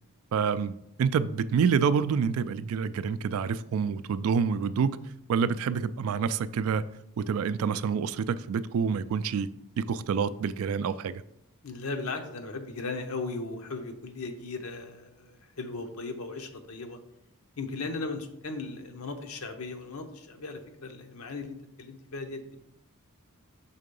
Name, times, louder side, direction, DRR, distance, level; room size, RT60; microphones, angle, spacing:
voice 1, 0.3-0.7 1.0-5.0 5.3-6.8 7.2-9.5 9.8-11.2, right 6 dB, 65° right, 0.3 m, -27 dB
voice 2, 11.6-17.0 17.6-22.4, left 3 dB, 75° left, 0.8 m, -37 dB
5.7 x 3.7 x 5.3 m
head